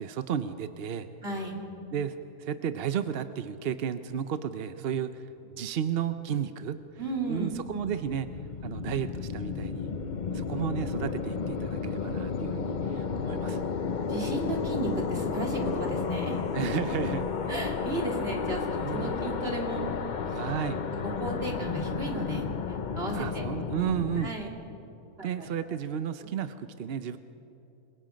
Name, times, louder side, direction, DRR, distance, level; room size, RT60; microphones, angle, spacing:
voice 1, 0.0-1.1 1.9-6.8 7.3-8.3 8.6-13.6 16.5-17.3 18.8-19.2 20.3-20.9 23.1-24.3 25.2-27.2, right 8 dB, 55° right, 10 dB, 0.7 m, -33 dB
voice 2, 1.2-1.6 7.0-7.6 14.1-16.4 17.5-19.9 20.2-20.4 21.0-22.5 23.0-23.3 24.2-24.5 25.2-25.8 26.2-26.3, right 2 dB, 40° right, 0 dB, 3.1 m, -34 dB
sound 1, 7.2-24.3, left 5 dB, 45° left, 0.6 m, -32 dB
27.0 x 23.0 x 5.2 m, 2.8 s
omnidirectional pair, 1.7 m